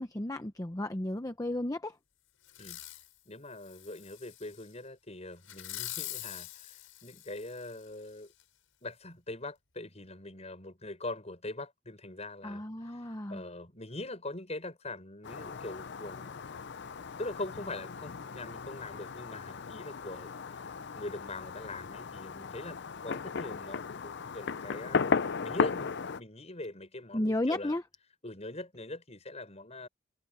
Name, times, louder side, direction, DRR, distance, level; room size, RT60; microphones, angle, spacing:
voice 1, 0.0-2.0 12.4-13.4 27.1-27.8, left 1 dB, 15° left, 0.8 m, -33 dB
Fireworks, 2.5-3.1 3.6-4.7 5.4-7.8 8.4-8.5, left 15 dB, 85° left, 6.1 m, -44 dB
voice 2, 3.2-8.3 8.8-16.4 17.2-25.1 25.4-27.8 28.2-29.9, left 2 dB, 35° left, 6.5 m, -42 dB
Fireworks 2, 15.2-26.2, left 5 dB, 60° left, 0.5 m, -36 dB
head